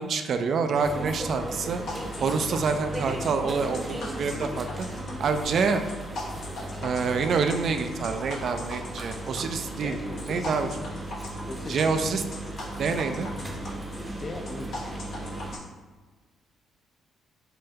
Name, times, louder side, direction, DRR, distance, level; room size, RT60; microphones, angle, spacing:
voice 1, 0.0-1.8 2.2-4.7 5.2-5.8 6.8-10.0 10.2-10.7 11.7-12.2 12.8-13.3, right 5 dB, 60° right, 7 dB, 0.3 m, -27 dB
sound 1, 0.8-15.6, right 1 dB, 15° right, 0.6 m, -36 dB
sound 2, 1.2-12.0, right 1 dB, 80° right, 1.3 m, -51 dB
sound 3, 1.9-15.6, left 2 dB, 70° left, 0.8 m, -40 dB
voice 2, 9.8-11.0 11.5-11.9 14.1-14.9, left 2 dB, 40° left, 6 dB, 0.4 m, -40 dB
5.4 x 2.2 x 2.7 m, 1.4 s
cardioid pair, 90°, 0 cm